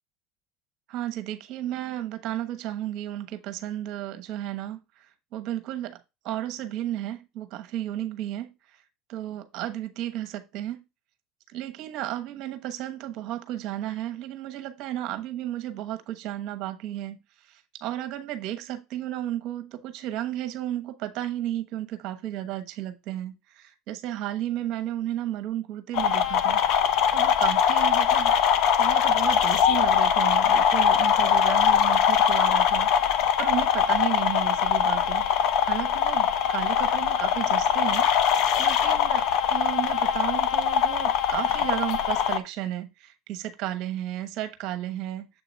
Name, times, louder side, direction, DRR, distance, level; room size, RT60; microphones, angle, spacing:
voice 1, 0.9-8.8 9.1-10.8 11.5-26.7 27.1-28.3 28.8-35.3 35.6-38.1 38.6-45.3, right 13 dB, 60° right, 1.1 m, -33 dB
sound 1, 25.9-42.4, left 8 dB, 65° left, 0.8 m, -22 dB
7.5 x 3.0 x 5.2 m
supercardioid pair, 95°, 0 cm